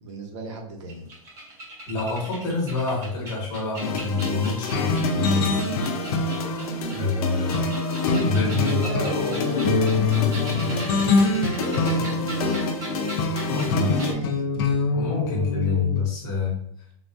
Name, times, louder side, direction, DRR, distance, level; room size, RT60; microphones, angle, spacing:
voice 1, 0.0-1.1 8.6-12.7 13.7-14.5, right 2 dB, 55° right, 2 dB, 0.8 m, -35 dB
sound 1, 0.9-5.2 5.6-7.0 7.4-13.7 14.0-14.1, right 1 dB, 15° right, 0.5 m, -39 dB
voice 2, 1.9-5.6 6.9-7.7 8.2-8.8 13.5-13.9 14.9-16.5, left 3 dB, 20° left, -4 dB, 1.0 m, -26 dB
sound 2, 3.8-14.1, left 5 dB, 85° left, 0.7 m, -30 dB
sound 3, 4.7-16.0, left 3 dB, 40° left, 0.4 m, -25 dB
3.5 x 2.2 x 2.6 m, 0.72 s
supercardioid pair, 170°, 18 cm